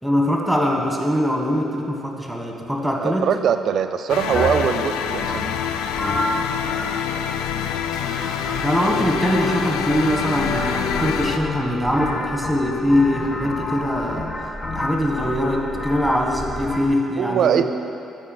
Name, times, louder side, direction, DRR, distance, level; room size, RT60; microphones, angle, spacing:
voice 1, 0.0-3.3 8.6-14.3 14.7-17.8, equal, ahead, 0 dB, 1.5 m, -22 dB
voice 2, 3.0-5.5 17.2-17.8, right 8 dB, 65° right, 9 dB, 0.3 m, -21 dB
sound 1, 4.1-11.4, left 8 dB, 85° left, 0.4 m, -26 dB
sound 2, 4.3-16.9, left 2 dB, 40° left, 1.0 m, -30 dB
8.6 x 4.8 x 7.5 m, 2.7 s
supercardioid pair, 65°, 0 cm